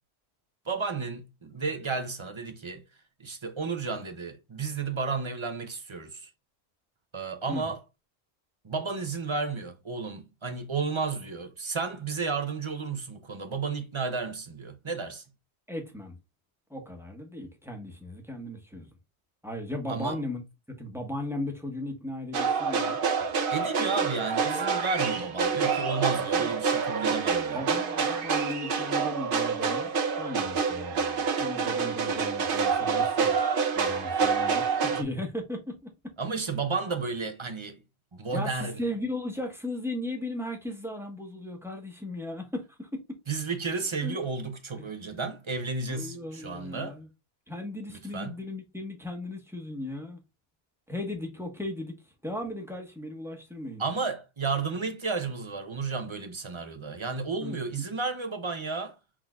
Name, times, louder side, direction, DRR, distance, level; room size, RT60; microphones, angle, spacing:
voice 1, 0.7-2.8 3.2-6.3 7.1-7.8 8.6-15.2 19.9-20.2 23.5-27.6 36.2-37.8 38.1-38.8 43.3-47.0 47.9-48.3 53.8-59.0, right 4 dB, 30° right, 0.7 m, -32 dB
voice 2, 15.7-16.2 16.7-18.9 19.4-20.4 20.8-23.0 26.3-26.5 27.5-29.9 30.2-33.4 33.7-35.9 38.3-43.2 44.0-44.2 44.8-44.9 45.9-47.1 47.5-50.2 50.9-51.9 52.2-53.8 57.4-57.9, left 1 dB, ahead, 1.2 m, -36 dB
sound 1, 22.3-35.0, right 5 dB, 55° right, 1.0 m, -27 dB
6.0 x 3.7 x 2.3 m
omnidirectional pair, 1.1 m